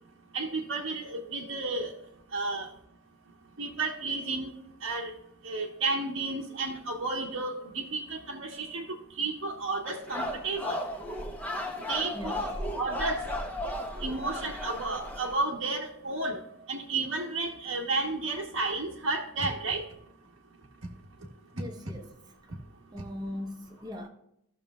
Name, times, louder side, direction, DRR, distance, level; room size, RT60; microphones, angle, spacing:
voice 1, 0.3-1.9 2.3-2.7 3.6-4.5 4.8-5.1 5.4-10.8 11.9-13.2 14.0-16.4 16.7-19.8, right 3 dB, 60° right, 1.1 m, -32 dB
sound 1, 9.8-15.4, left 1 dB, 5° left, 0.9 m, -35 dB
voice 2, 12.1-12.5 21.5-22.5 22.9-24.1, left 1 dB, 20° right, 1.0 m, -40 dB
15.0 x 6.6 x 2.3 m
head